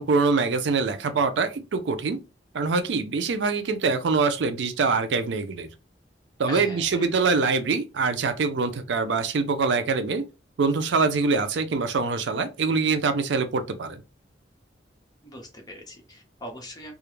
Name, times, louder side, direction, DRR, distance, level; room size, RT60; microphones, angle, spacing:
voice 1, 0.0-2.2 2.5-5.7 6.4-10.3 10.6-14.0, right 4 dB, 80° right, 0.4 m, -24 dB
voice 2, 6.5-7.1 15.2-16.9, equal, 20° left, 0.7 m, -40 dB
2.3 x 2.1 x 3.0 m
head